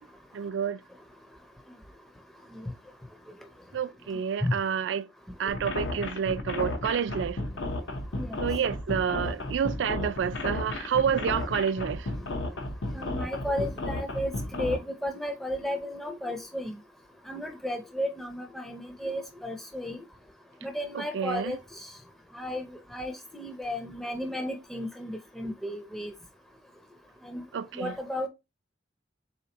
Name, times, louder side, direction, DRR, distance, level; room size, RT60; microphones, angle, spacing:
voice 1, 0.3-0.8 3.7-5.1 5.4-7.4 8.4-12.0 21.0-21.5 27.5-27.9, right 7 dB, 75° right, 0.3 m, -29 dB
sound 1, 5.5-14.8, left 2 dB, 85° left, 0.8 m, -33 dB
voice 2, 12.9-16.8 17.3-20.0 20.6-21.9 22.3-26.1 27.2-27.4 27.7-28.3, left 1 dB, ahead, 0.4 m, -34 dB
4.2 x 3.4 x 2.9 m
head